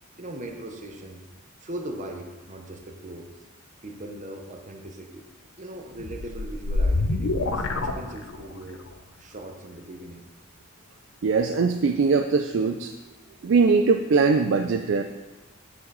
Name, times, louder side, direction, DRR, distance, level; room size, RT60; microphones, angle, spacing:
voice 1, 0.1-1.2 1.6-3.3 3.8-5.3 5.6-8.8 9.2-10.3, right 1 dB, 35° right, 3 dB, 0.7 m, -39 dB
sound 1, 6.0-8.7, left 2 dB, 70° left, 0.6 m, -26 dB
voice 2, 11.2-12.9 13.4-15.0, right 4 dB, 60° right, 6 dB, 0.4 m, -21 dB
8.7 x 5.5 x 4.0 m, 1.2 s
head